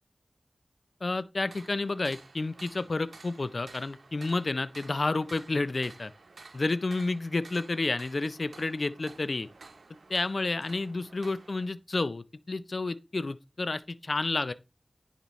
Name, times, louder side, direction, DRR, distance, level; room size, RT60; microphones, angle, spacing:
voice 1, 1.0-6.1 6.5-9.5 10.1-14.5, left 3 dB, 60° left, 0.4 m, -30 dB
sound 1, 1.4-11.7, right 3 dB, 80° right, 0.8 m, -52 dB
10.0 x 4.2 x 3.1 m
wide cardioid pair, 55°, 0 cm